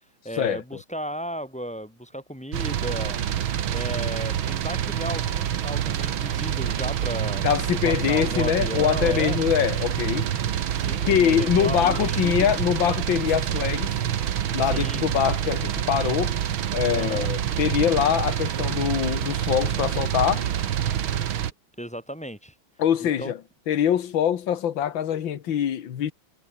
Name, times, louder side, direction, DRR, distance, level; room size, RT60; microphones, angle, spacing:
voice 1, 0.2-3.2 3.7-9.4 10.8-12.5 14.6-15.0 16.9-17.3 21.8-22.5 23.0-23.3, equal, 5° left, 3.9 m, -34 dB
sound 1, 2.5-21.5, right 10 dB, 80° right, 2.1 m, -27 dB
voice 2, 7.4-10.3 11.1-13.9 14.5-16.4 16.7-20.5 22.8-23.4 23.7-26.1, left 9 dB, 70° left, 2.1 m, -24 dB
omnidirectional pair, 2.2 m